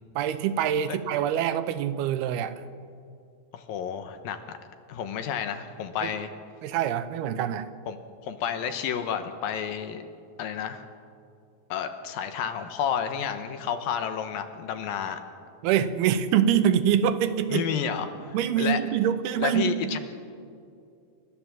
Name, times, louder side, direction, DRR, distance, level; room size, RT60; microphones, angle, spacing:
voice 1, 0.2-2.5 6.0-6.1 6.6-7.7 15.6-17.7 18.3-20.0, right 9 dB, 85° right, 11 dB, 2.9 m, -25 dB
voice 2, 3.5-4.4 4.9-6.3 7.9-8.0 8.2-10.1 10.4-10.9 11.7-15.2 17.5-18.8 19.4-20.0, left 8 dB, 75° left, 8 dB, 2.8 m, -30 dB
29.0 x 13.0 x 7.5 m, 2.4 s
omnidirectional pair, 4.4 m